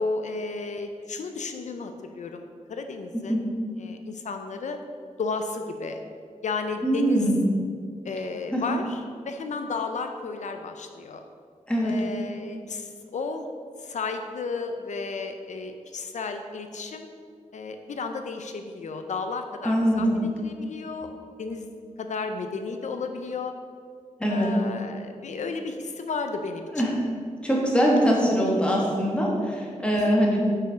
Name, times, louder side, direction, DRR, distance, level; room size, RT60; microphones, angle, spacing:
voice 1, 0.0-3.5 3.8-4.8 5.2-6.0 6.4-7.3 8.0-11.2 11.8-13.5 13.8-17.1 17.5-21.1 21.4-21.7 22.0-23.5 24.3-26.9, left 4 dB, 70° left, 6 dB, 0.4 m, -33 dB
voice 2, 6.8-7.4 8.5-8.6 11.7-11.9 19.6-20.2 24.2-24.5 26.7-26.9 27.4-30.5, equal, 10° left, -3 dB, 1.2 m, -22 dB
6.1 x 4.7 x 4.9 m, 2.1 s
wide cardioid pair, 135°, 13 cm